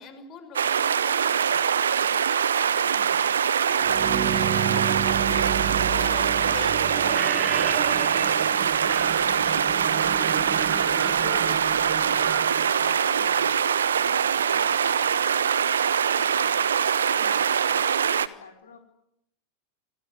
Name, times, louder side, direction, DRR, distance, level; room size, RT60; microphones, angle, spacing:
voice 1, 0.0-1.6 2.0-2.3 2.5-3.2 3.7-3.9 4.3-5.5 5.8-13.5 17.1-17.4, left 7 dB, 35° left, 10 dB, 5.7 m, -44 dB
sound 1, 0.5-18.3, right 8 dB, 65° right, 1.2 m, -23 dB
voice 2, 1.8-2.2 9.3-9.6 12.9-18.8, left 5 dB, 70° left, 3 dB, 4.4 m, -47 dB
sound 2, 3.8-13.6, right 9 dB, 30° right, 1.5 m, -32 dB
29.0 x 19.5 x 9.9 m, 0.79 s
figure-of-eight pair, 90°, 0 cm